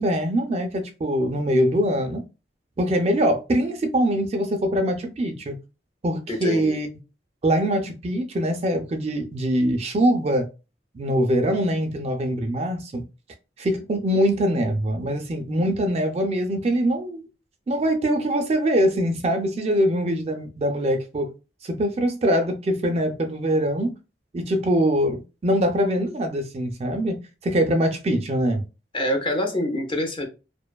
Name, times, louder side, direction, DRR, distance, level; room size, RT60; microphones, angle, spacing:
voice 1, 0.0-2.2 2.8-5.6 6.0-6.9 7.4-10.5 10.9-13.0 13.6-17.3 17.7-21.3 21.6-23.9 24.3-27.2 27.4-28.6, equal, 35° right, 0.3 m, -23 dB
voice 2, 6.3-6.8 28.9-30.3, equal, 30° left, 0.5 m, -25 dB
2.5 x 2.2 x 2.2 m
head